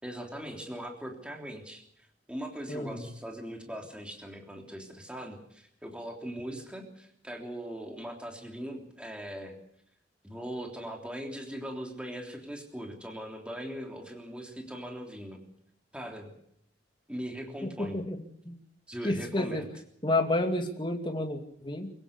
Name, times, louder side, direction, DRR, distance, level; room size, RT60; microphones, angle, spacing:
voice 1, 0.0-9.5 10.2-15.4 15.9-16.3 17.1-18.0 18.9-19.7, equal, 5° right, 2 dB, 3.4 m, -40 dB
voice 2, 2.7-3.0 17.6-18.2 18.5-18.6 19.0-19.6 20.0-21.9, left 1 dB, 25° left, 5 dB, 2.6 m, -30 dB
24.0 x 16.0 x 8.4 m, 0.69 s
head